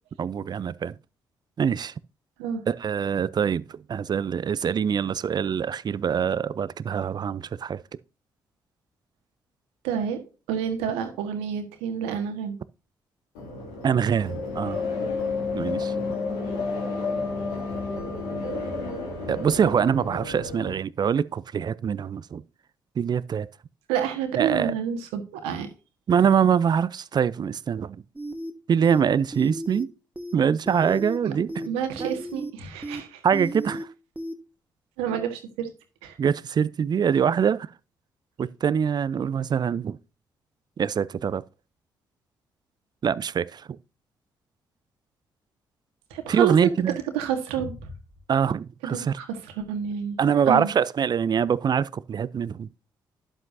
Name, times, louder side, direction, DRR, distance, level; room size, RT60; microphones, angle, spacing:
voice 1, 0.2-1.0 1.6-1.9 2.7-7.8 13.8-14.8 15.5-16.1 19.3-22.4 23.0-23.5 24.4-24.7 26.1-28.0 28.7-29.9 30.3-31.7 32.0-32.1 33.2-33.9 36.2-37.7 38.4-40.0 40.8-41.4 43.0-43.8 46.3-47.0 48.3-49.1 50.2-52.7, right 7 dB, 45° right, 0.6 m, -24 dB
voice 2, 9.8-10.2 10.5-12.6 15.6-15.8 23.9-25.7 31.2-31.3 31.6-33.2 35.0-35.7 36.0-36.2 46.1-46.5 47.1-47.9 48.8-49.3 49.6-50.2 50.5-50.7, right 8 dB, 75° right, 1.6 m, -29 dB
sound 1, 13.3-20.7, left 3 dB, 80° left, 2.6 m, -31 dB
sound 2, 28.2-28.5 28.8-29.0 29.3-29.8 30.2-30.3 30.7-31.2 31.5-31.7 32.0-32.5 32.8-33.0 33.3-33.8 34.2-34.3, right 1 dB, 15° right, 1.4 m, -34 dB
11.0 x 7.5 x 2.7 m
hypercardioid pair, 40°, 10 cm